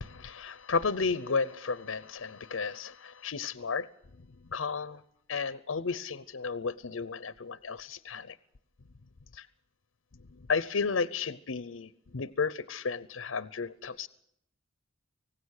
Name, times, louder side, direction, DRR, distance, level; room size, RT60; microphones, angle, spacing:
voice 1, 0.0-3.9 4.5-5.0 5.3-8.4 9.3-9.5 10.3-14.1, left 5 dB, 85° left, 16 dB, 0.7 m, -33 dB
26.0 x 18.0 x 6.5 m, 0.76 s
head